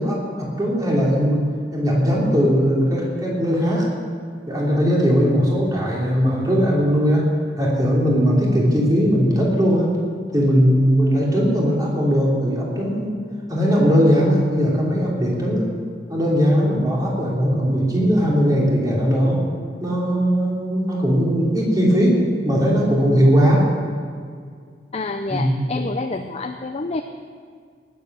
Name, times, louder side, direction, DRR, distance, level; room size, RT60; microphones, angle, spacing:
voice 1, 0.0-1.4 1.7-3.8 4.5-7.2 7.6-9.9 10.3-13.2 13.5-15.7 16.1-19.4 19.8-23.6 25.3-25.5, equal, 20° right, -4 dB, 3.2 m, -19 dB
voice 2, 24.9-27.0, left 3 dB, 35° left, 6 dB, 0.5 m, -28 dB
19.0 x 7.9 x 6.2 m, 2.1 s
head